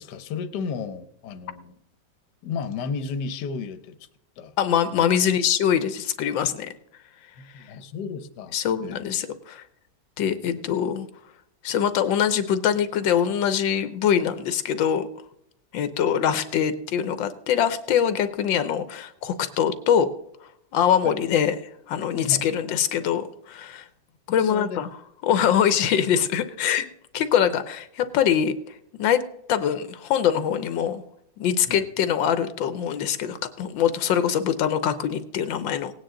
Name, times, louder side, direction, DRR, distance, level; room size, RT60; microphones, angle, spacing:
voice 1, 0.0-1.7 2.4-4.0 4.4-4.5 5.0-5.1 7.5-8.5 8.8-9.0 10.2-10.3 21.0-21.1 22.3-22.4 24.4-24.8 31.7-31.9, left 5 dB, 65° left, 11 dB, 1.4 m, -33 dB
voice 2, 4.6-6.7 8.5-9.6 10.2-11.1 11.6-15.1 15.7-20.1 20.7-21.6 21.9-23.9 24.3-24.9 25.2-26.8 27.1-29.2 29.5-31.0 31.4-35.9, left 9 dB, 85° left, 12 dB, 1.5 m, -23 dB
18.0 x 9.3 x 3.8 m, 0.77 s
omnidirectional pair, 2.0 m